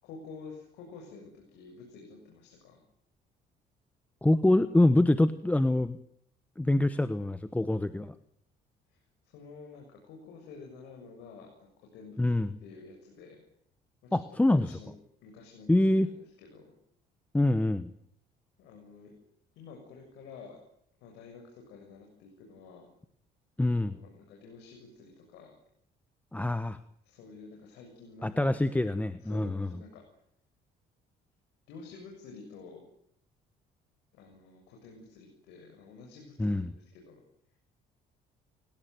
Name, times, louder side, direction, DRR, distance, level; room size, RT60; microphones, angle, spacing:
voice 1, 0.0-2.8 8.9-9.0 9.2-13.4 14.0-14.9 15.2-16.7 18.6-19.1 19.5-20.6 21.0-22.9 23.8-25.5 27.0-28.7 29.2-30.0 31.7-32.8 34.1-37.2, left 4 dB, 90° left, 2 dB, 6.9 m, -50 dB
voice 2, 4.2-6.0 6.6-8.1 12.2-12.6 14.1-14.7 15.7-16.1 17.3-17.9 23.6-24.0 26.3-26.8 28.2-29.7 36.4-36.7, left 1 dB, 10° left, 12 dB, 1.1 m, -25 dB
30.0 x 18.0 x 9.4 m, 0.70 s
cardioid pair, 110°, 17 cm